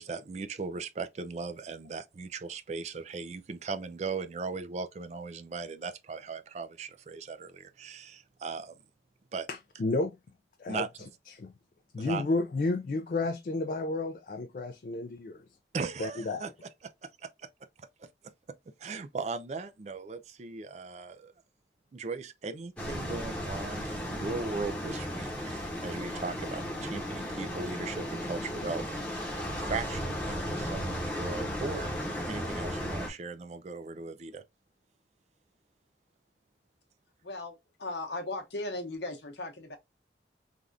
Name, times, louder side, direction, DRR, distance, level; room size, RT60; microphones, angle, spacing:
voice 1, 0.0-8.8 9.3-9.5 10.7-10.9 12.0-12.3 15.7-17.5 18.0-18.1 18.8-21.3 21.9-34.4, right 4 dB, 40° right, 0.3 m, -38 dB
voice 2, 9.5-10.1 10.6-10.8 11.3-11.5 11.9-15.4 16.0-16.4, left 2 dB, 50° left, 0.3 m, -31 dB
sound 1, 22.8-33.1, equal, 5° left, 0.8 m, -35 dB
voice 3, 37.2-39.8, left 2 dB, 75° left, 0.9 m, -37 dB
3.4 x 2.4 x 2.5 m
head